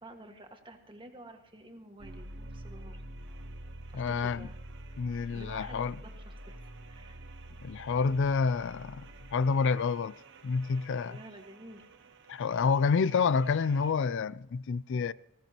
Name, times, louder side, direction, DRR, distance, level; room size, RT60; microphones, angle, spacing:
voice 1, 0.0-3.0 3.9-4.6 5.3-7.2 11.0-11.8, right 1 dB, 20° right, 1.7 m, -51 dB
sound 1, 2.0-13.9, right 1 dB, 55° right, 1.1 m, -48 dB
voice 2, 3.9-4.5 5.0-6.0 7.6-9.1 9.3-10.1 10.4-11.2 12.3-15.1, left 5 dB, 55° left, 0.4 m, -28 dB
20.0 x 16.5 x 2.9 m
head